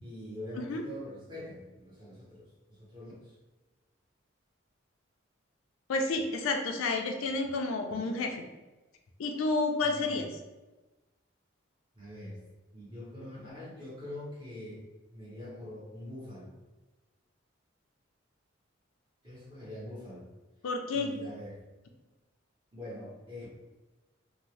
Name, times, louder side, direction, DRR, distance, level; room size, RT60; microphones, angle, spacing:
voice 1, 0.0-3.3 9.8-10.2 11.9-12.4 12.7-14.8 15.1-16.5 19.2-20.3 20.9-21.6 22.7-23.5, left 1 dB, 25° right, -7 dB, 1.0 m, -44 dB
voice 2, 5.9-8.4 9.2-10.3 20.6-21.1, left 3 dB, 85° left, 4 dB, 0.4 m, -30 dB
2.6 x 2.0 x 3.1 m, 1.1 s
head